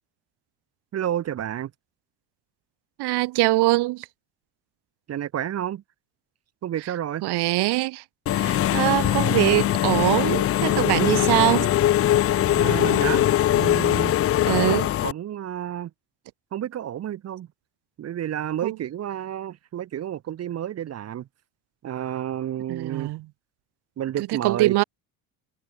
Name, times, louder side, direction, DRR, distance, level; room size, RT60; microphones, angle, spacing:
voice 1, 0.9-1.7 5.1-5.8 6.6-7.2 12.5-13.3 13.5-14.1 15.0-15.9 16.5-17.5 18.0-21.3 21.8-23.1 24.0-24.8, right 11 dB, 35° right, 0.7 m, -30 dB
voice 2, 3.0-4.1 7.2-8.0 8.3-11.7 14.5-14.9 18.6-18.8 22.7-23.3 24.3-24.8, right 19 dB, 65° right, 1.2 m, -23 dB
Engine / Mechanisms, 8.3-15.1, left 12 dB, 35° left, 0.5 m, -21 dB
cardioid pair, 115°, 42 cm